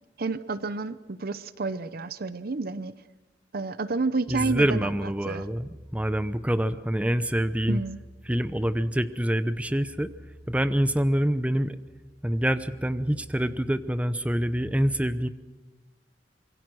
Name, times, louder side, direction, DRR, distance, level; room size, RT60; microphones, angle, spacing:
voice 1, 0.2-2.9 3.5-4.9 5.3-5.4 7.7-8.0, right 3 dB, 55° right, 15 dB, 0.7 m, -30 dB
voice 2, 4.3-7.8 8.3-10.1 10.5-11.8 12.2-15.3, equal, 10° right, 13 dB, 0.8 m, -26 dB
26.0 x 22.5 x 6.3 m, 1.2 s
head